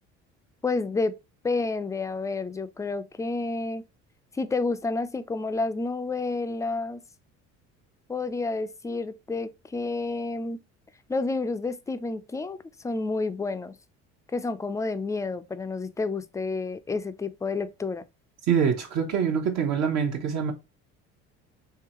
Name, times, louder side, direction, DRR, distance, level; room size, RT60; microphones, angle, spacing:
voice 1, 0.6-1.1 1.4-3.8 4.3-7.0 8.1-10.6 11.1-12.6 12.8-13.8 14.3-18.0, left 3 dB, 10° left, 0.3 m, -30 dB
voice 2, 18.5-20.5, right 7 dB, 60° right, 0.9 m, -25 dB
3.8 x 2.8 x 2.9 m
supercardioid pair, 85°, 32 cm